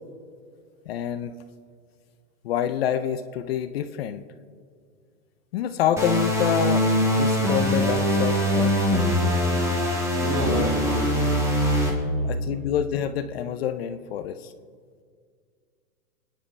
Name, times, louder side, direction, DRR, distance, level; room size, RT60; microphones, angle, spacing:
voice 1, 0.9-1.3 2.4-4.2 5.5-6.9 7.1-8.8 10.5-10.7 12.2-14.5, left 9 dB, 40° left, 11 dB, 0.6 m, -27 dB
sound 1, 6.0-11.9, equal, 5° right, 1.8 m, -22 dB
voice 2, 10.2-11.4 11.9-12.7, right 3 dB, 60° right, 1 dB, 3.2 m, -33 dB
29.5 x 10.0 x 3.3 m, 2.1 s
hypercardioid pair, 140°, 48 cm